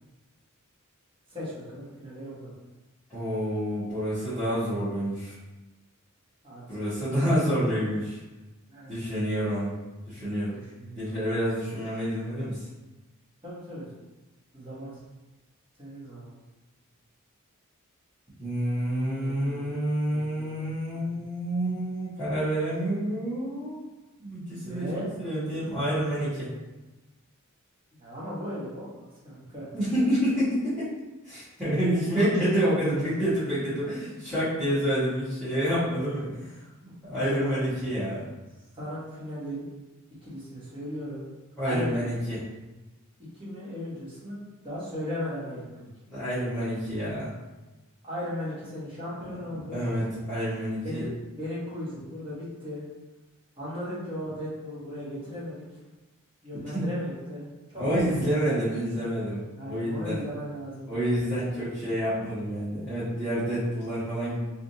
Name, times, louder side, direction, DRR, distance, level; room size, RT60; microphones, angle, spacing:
voice 1, 1.3-2.5 6.4-6.6 8.7-8.9 10.5-11.1 13.4-13.9 14.5-15.0 15.8-16.3 19.1-19.7 20.1-20.6 20.9-21.2 24.6-25.1 28.0-29.7 33.0-33.2 33.6-33.9 37.1-37.6 38.7-39.7 40.2-41.2 41.6-42.1 43.3-45.9 48.0-49.8 50.8-51.1 51.4-52.8 53.6-55.6 56.4-57.5 57.7-58.6 59.5-61.3, left 1 dB, 25° right, -9 dB, 1.3 m, -37 dB
voice 2, 3.1-5.3 6.7-8.2 8.9-9.7 10.1-10.6 11.0-12.7 18.4-23.8 24.2-26.5 29.7-30.9 31.2-36.6 37.0-38.3 41.6-42.4 46.1-47.3 49.2-49.3 49.7-51.0 56.7-56.8 57.7-59.4 59.6-60.2 60.9-64.4, equal, 5° left, -18 dB, 1.3 m, -28 dB
3.4 x 2.5 x 2.7 m, 1.1 s
head